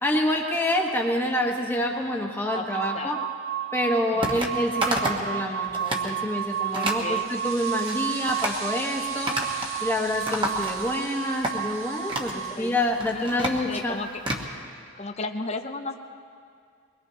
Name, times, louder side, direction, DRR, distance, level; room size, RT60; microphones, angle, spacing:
voice 1, 0.0-3.2 3.7-9.4 9.8-13.9, left 1 dB, 10° left, 0 dB, 1.3 m, -27 dB
voice 2, 2.5-3.3 4.1-4.6 6.7-7.3 9.8-9.9 12.5-12.8 13.1-14.1 15.0-16.0, left 3 dB, 30° left, 6 dB, 0.6 m, -35 dB
sound 1, 2.5-12.6, right 10 dB, 50° right, 0.5 m, -32 dB
sound 2, 4.2-4.5 4.8-5.3 5.6-6.1 6.7-7.0 7.6-8.0 8.3-8.6 9.3-9.8 10.0-11.0 11.4-11.6 12.1-12.4 12.9-14.5, right 1 dB, 25° right, 1.3 m, -30 dB
sound 3, 6.3-13.3, right 3 dB, 85° right, 1.9 m, -41 dB
23.5 x 21.0 x 2.9 m, 2.3 s
head